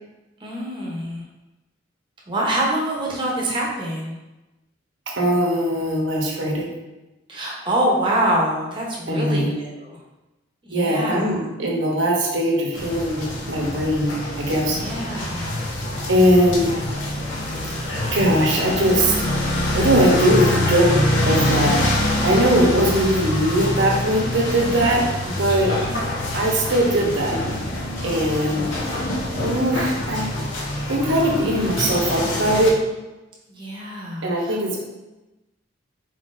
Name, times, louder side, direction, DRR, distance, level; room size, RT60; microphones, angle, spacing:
voice 1, 0.4-1.2 2.3-4.2 7.3-10.0 10.6-11.4 14.7-15.6 25.5-26.0 33.5-34.8, right 1 dB, 25° right, -3 dB, 0.9 m, -25 dB
voice 2, 5.2-6.7 9.1-9.5 10.7-14.1 14.4-14.8 16.1-16.7 18.1-19.2 19.7-20.9 21.3-21.8 22.2-25.7 26.3-27.4 28.0-29.0 29.4-30.3 30.9-32.8 34.2-34.8, right 1 dB, 70° right, -1 dB, 0.9 m, -20 dB
sound 1, 12.7-32.7, left 1 dB, 70° left, 0.8 m, -25 dB
4.5 x 3.8 x 2.6 m, 1.0 s
head